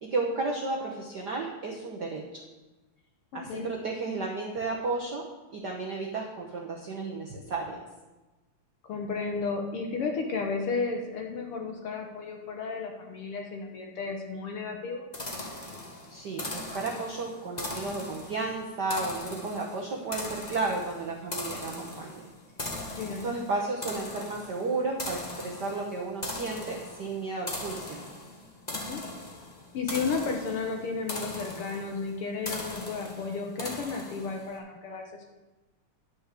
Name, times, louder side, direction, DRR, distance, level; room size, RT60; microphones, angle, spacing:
voice 1, 0.0-2.4 3.3-5.3 5.5-7.8 16.1-22.2 22.8-22.9 23.2-28.0, right 3 dB, 60° right, 0 dB, 1.1 m, -33 dB
voice 2, 3.3-3.7 8.8-15.0 23.0-23.2 28.7-29.0 29.7-35.3, left 4 dB, 60° left, 2 dB, 1.7 m, -33 dB
sound 1, 15.1-34.5, left 2 dB, 45° left, 0.5 m, -39 dB
10.5 x 5.3 x 8.2 m, 1.1 s
omnidirectional pair, 3.3 m